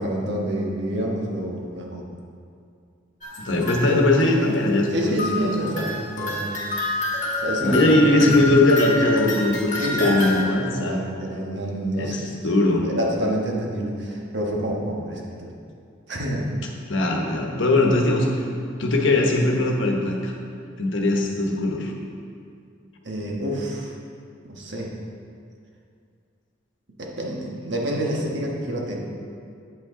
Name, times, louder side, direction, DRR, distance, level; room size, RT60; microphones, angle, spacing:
voice 1, 0.0-2.0 4.9-6.5 7.4-8.4 9.8-12.5 12.8-15.5 16.1-16.4 23.0-23.9 24.4-24.9 27.0-29.0, right 1 dB, 60° right, -1 dB, 1.3 m, -28 dB
sound 1, 3.2-4.2 5.2-10.4, left 2 dB, 40° left, 1.4 m, -28 dB
voice 2, 3.4-5.2 7.6-11.0 12.0-12.9 16.9-18.4 18.8-20.3 20.8-21.9, left 2 dB, 70° left, 1 dB, 1.1 m, -20 dB
8.8 x 8.2 x 3.8 m, 2.3 s
head